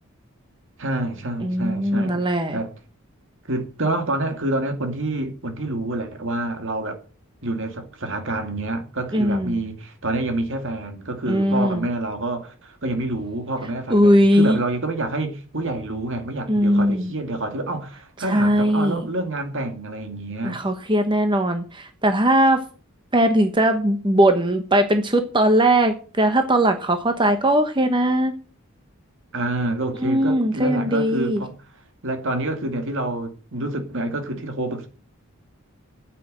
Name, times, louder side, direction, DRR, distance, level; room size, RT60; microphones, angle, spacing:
voice 1, 0.8-2.3 2.5-2.7 3.5-7.0 7.4-20.6 29.3-31.5 32.0-34.9, right 2 dB, 60° right, 2.4 m, -27 dB
voice 2, 1.4-2.6 9.1-9.6 11.3-11.9 13.9-14.6 16.5-17.1 18.2-19.0 20.4-22.6 23.1-28.3 30.0-31.4, right 1 dB, 20° right, 1.2 m, -19 dB
9.3 x 8.5 x 7.7 m
head